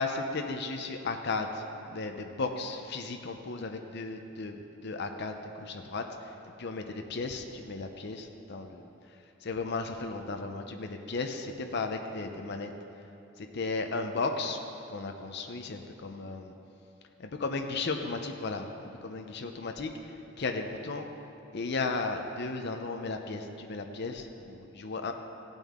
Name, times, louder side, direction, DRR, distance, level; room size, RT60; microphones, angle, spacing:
voice 1, 0.0-8.9 9.4-12.7 13.4-14.6 14.9-16.5 17.2-21.1 21.5-25.1, left 3 dB, 55° left, 5 dB, 0.6 m, -35 dB
16.0 x 9.1 x 3.6 m, 2.9 s
head